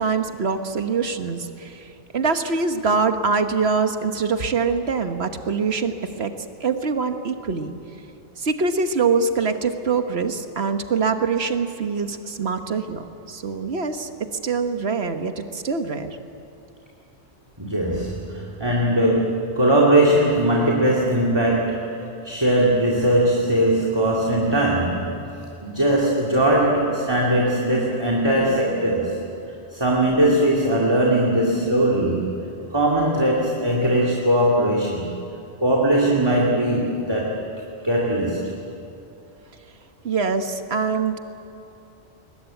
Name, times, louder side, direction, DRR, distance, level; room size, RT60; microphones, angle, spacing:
voice 1, 0.0-6.3 6.6-7.7 8.4-14.1 14.4-16.2 40.0-41.2, right 5 dB, 60° right, 7 dB, 1.5 m, -24 dB
voice 2, 17.6-25.1 25.6-29.2 29.7-32.3 32.7-35.1 35.6-37.4 37.8-38.5, right 1 dB, 20° right, -3 dB, 2.4 m, -20 dB
21.0 x 21.0 x 9.2 m, 2.8 s
omnidirectional pair, 1.2 m